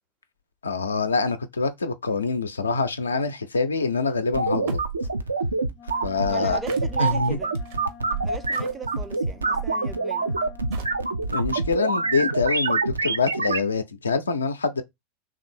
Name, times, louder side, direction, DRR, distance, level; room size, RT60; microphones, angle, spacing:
voice 1, 0.6-4.8 6.0-6.6 7.0-7.4 11.3-14.8, left 4 dB, 75° left, 0.5 m, -25 dB
sound 1, 4.1-4.2 4.7-5.1 6.7-9.3 10.3-10.4 10.7-11.5, right 7 dB, 55° right, 0.7 m, -43 dB
sound 2, 4.3-13.6, right 3 dB, 80° right, 0.5 m, -26 dB
Wind instrument woodwind instrument, 5.7-12.5, left 9 dB, 30° left, 0.6 m, -48 dB
voice 2, 6.3-7.6 8.2-10.4, right 3 dB, 15° right, 0.5 m, -39 dB
3.2 x 2.4 x 4.3 m
figure-of-eight pair, 85°, 0 cm